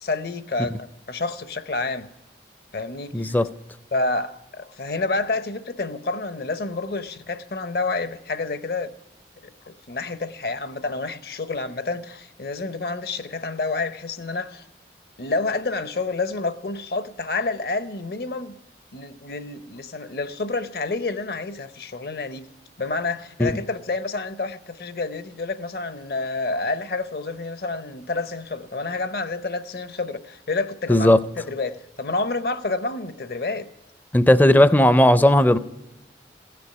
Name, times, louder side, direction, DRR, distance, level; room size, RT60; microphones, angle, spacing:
voice 1, 0.0-0.8 1.1-2.1 2.7-3.4 3.9-8.9 9.7-14.6 15.2-18.5 18.9-22.5 22.8-33.7, left 3 dB, 60° left, 0.8 m, -29 dB
voice 2, 3.1-3.5 23.4-23.5 30.9-31.2 34.1-35.6, left 1 dB, 10° left, 0.4 m, -15 dB
16.0 x 6.9 x 10.0 m
head